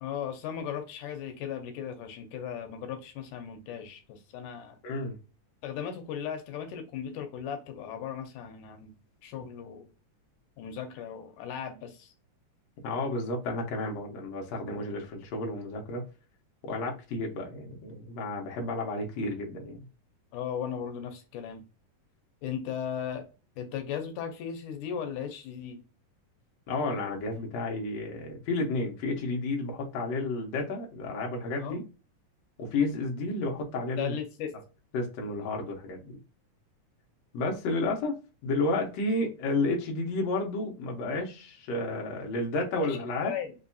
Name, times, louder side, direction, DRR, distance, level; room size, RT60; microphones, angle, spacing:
voice 1, 0.0-4.8 5.6-8.9 9.2-9.9 10.6-12.1 20.3-21.6 22.4-23.3 23.6-25.8 31.6-31.8 34.0-34.5 42.8-43.5, left 8 dB, 90° left, 2.3 m, -37 dB
voice 2, 4.8-5.2 12.8-16.0 16.6-19.8 26.7-31.8 32.6-34.2 34.9-36.1 37.3-38.2 38.4-43.3, left 2 dB, 65° left, 2.1 m, -31 dB
5.5 x 2.7 x 2.6 m
omnidirectional pair, 3.5 m